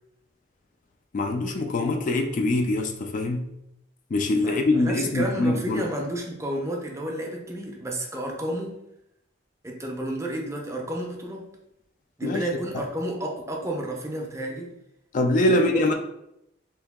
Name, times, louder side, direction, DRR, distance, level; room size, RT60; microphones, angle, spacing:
voice 1, 1.1-3.5 4.1-5.9 12.2-12.4 15.1-15.9, left 2 dB, 45° left, 4 dB, 0.3 m, -23 dB
voice 2, 4.4-8.8 9.6-11.5 12.2-14.7 15.5-15.9, right 1 dB, 15° right, 0 dB, 0.5 m, -31 dB
2.9 x 2.7 x 3.5 m, 0.81 s
head